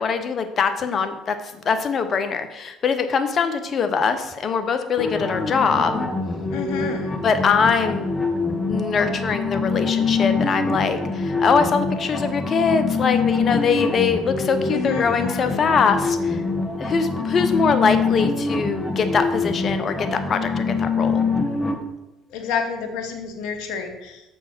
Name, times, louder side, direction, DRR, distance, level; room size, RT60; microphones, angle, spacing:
voice 1, 0.0-6.1 7.2-8.1 8.7-16.4 16.8-21.2, left 5 dB, 45° left, 9 dB, 0.9 m, -22 dB
sound 1, 5.0-21.7, left 4 dB, 25° left, 1.2 m, -25 dB
voice 2, 6.5-7.2 14.7-15.7 22.3-24.2, left 6 dB, 70° left, 5 dB, 1.2 m, -29 dB
7.0 x 4.5 x 6.1 m, 1.0 s
hypercardioid pair, 65°, 0 cm